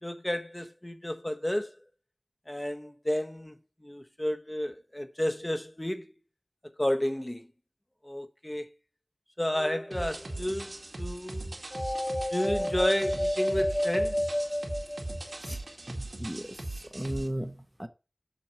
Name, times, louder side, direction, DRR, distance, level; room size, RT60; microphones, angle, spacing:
voice 1, 0.0-1.7 2.5-3.6 3.8-6.1 6.8-7.5 8.0-8.7 9.4-11.6 12.3-14.2, left 1 dB, 20° left, 0.9 m, -31 dB
sound 1, 9.5-10.3 11.7-15.5, left 1 dB, 40° left, 2.1 m, -31 dB
sound 2, 9.9-17.3, right 2 dB, 85° right, 2.0 m, -39 dB
voice 2, 16.0-17.9, right 1 dB, 10° right, 0.8 m, -36 dB
7.2 x 4.5 x 5.8 m
wide cardioid pair, 50°, 0 cm